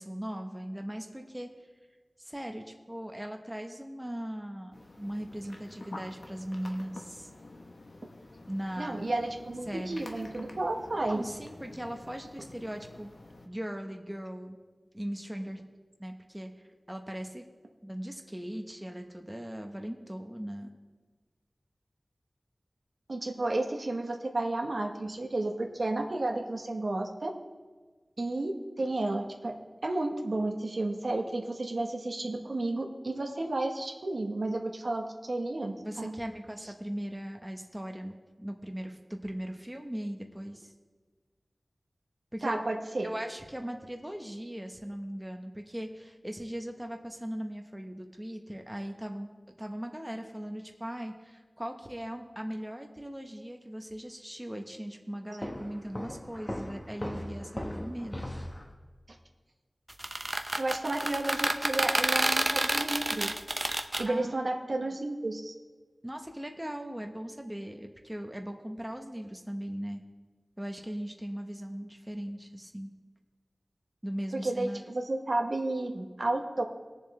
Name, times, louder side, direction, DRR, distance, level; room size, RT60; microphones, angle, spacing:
voice 1, 0.0-1.5 2.2-7.3 8.5-9.1 9.7-10.1 11.1-13.1 13.4-14.6 14.9-15.6 16.0-17.4 17.8-20.7 35.8-40.7 42.3-42.6 43.0-58.2 64.1-64.4 64.7-64.9 66.0-70.0 70.6-72.9 74.0-74.8, equal, 10° right, 3 dB, 1.0 m, -39 dB
sound 1, 4.7-13.5, left 2 dB, 85° left, 1.0 m, -49 dB
voice 2, 8.8-11.2 23.1-27.3 28.2-29.5 29.8-36.1 42.4-43.1 60.6-63.3 64.0-65.5 74.3-76.6, right 2 dB, 75° right, 2 dB, 1.1 m, -32 dB
Walk footsteps, 55.4-58.7, left 1 dB, 35° left, 1.3 m, -39 dB
sound 2, 59.9-64.0, right 1 dB, 30° right, 0.6 m, -29 dB
19.5 x 7.1 x 3.3 m, 1.4 s
wide cardioid pair, 60°, 0 cm